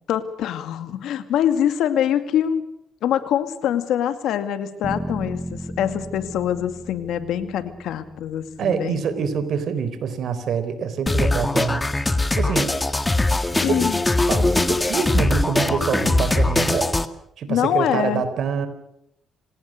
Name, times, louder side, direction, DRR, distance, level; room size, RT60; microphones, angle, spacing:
voice 1, 0.1-2.6 3.0-9.0 13.6-14.0 17.5-18.2, left 10 dB, 80° left, 9 dB, 2.3 m, -24 dB
sound 1, 4.8-8.9, right 1 dB, 10° right, 1.3 m, -35 dB
voice 2, 8.6-11.8 12.4-12.7 13.7-13.8 14.3-16.9 17.4-18.7, right 6 dB, 65° right, 11 dB, 4.0 m, -25 dB
sound 2, 11.1-17.1, left 2 dB, 15° left, 1.8 m, -21 dB
27.0 x 19.0 x 6.6 m, 0.78 s
cardioid pair, 90°, 0 cm